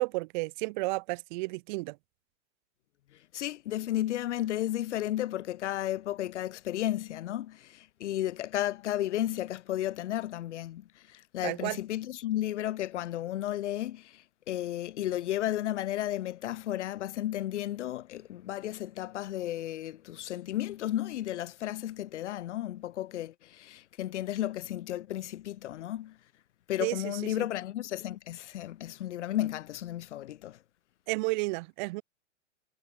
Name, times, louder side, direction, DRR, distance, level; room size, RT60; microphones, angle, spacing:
voice 1, 0.0-2.0 11.4-11.8 26.8-27.0 31.1-32.0, right 25 dB, 40° right, 0.7 m, -31 dB
voice 2, 3.3-26.2 26.7-30.6, left 13 dB, 60° left, 1.4 m, -33 dB
hypercardioid pair, 120°, 39 cm